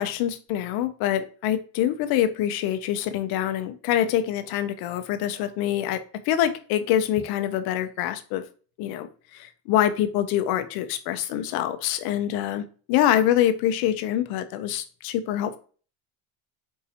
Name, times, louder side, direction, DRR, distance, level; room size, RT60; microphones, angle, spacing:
voice 1, 0.0-8.4 8.8-15.6, left 11 dB, 70° left, 10 dB, 0.7 m, -25 dB
4.7 x 2.7 x 4.1 m, 0.40 s
cardioid pair, 130°, 39 cm